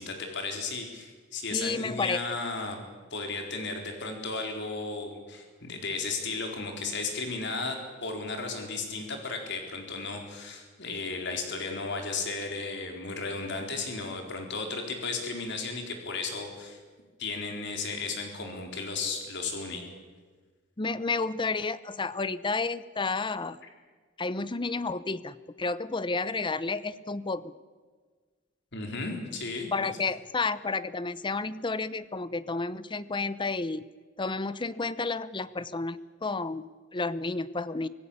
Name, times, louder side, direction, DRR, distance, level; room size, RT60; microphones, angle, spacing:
voice 1, 0.0-2.8 3.1-16.8 17.2-19.8 28.7-29.9, left 3 dB, 60° left, 3 dB, 4.1 m, -34 dB
voice 2, 1.5-2.2 20.8-23.6 24.2-27.5 29.7-33.8 34.2-37.9, left 3 dB, 25° left, 16 dB, 0.7 m, -31 dB
25.5 x 16.5 x 8.6 m, 1.5 s
head